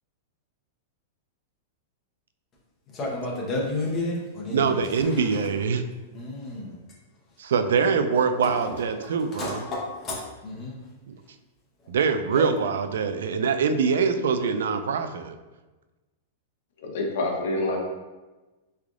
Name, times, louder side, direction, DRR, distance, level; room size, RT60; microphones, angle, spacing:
voice 1, 2.9-5.4 6.1-6.8 8.4-8.8 9.0-10.8 11.8-11.9 12.3-12.5, left 2 dB, 20° left, -4 dB, 0.8 m, -32 dB
voice 2, 4.5-5.8 7.4-9.6 11.1-11.2 11.9-15.4, right 5 dB, 90° right, 8 dB, 0.3 m, -24 dB
voice 3, 16.8-17.8, left 2 dB, 55° left, 0 dB, 0.8 m, -27 dB
3.6 x 3.3 x 2.4 m, 1.2 s
supercardioid pair, 170°, 0 cm